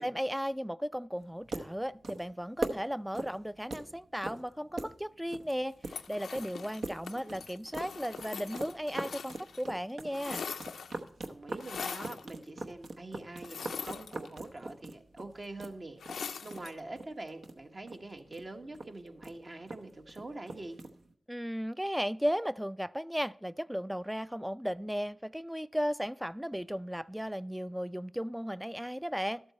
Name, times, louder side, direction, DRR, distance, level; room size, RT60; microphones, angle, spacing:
voice 1, 0.0-10.4 21.3-29.4, equal, 5° right, 0.3 m, -35 dB
sound 1, 1.2-21.1, right 2 dB, 75° right, 0.9 m, -43 dB
sound 2, 5.9-9.6 9.9-11.1 11.6-12.3 13.4-14.6 16.0-16.8, left 6 dB, 90° left, 0.4 m, -42 dB
voice 2, 11.3-20.8, right 2 dB, 50° right, 1.3 m, -45 dB
12.5 x 7.7 x 4.2 m
cardioid pair, 45°, 0 cm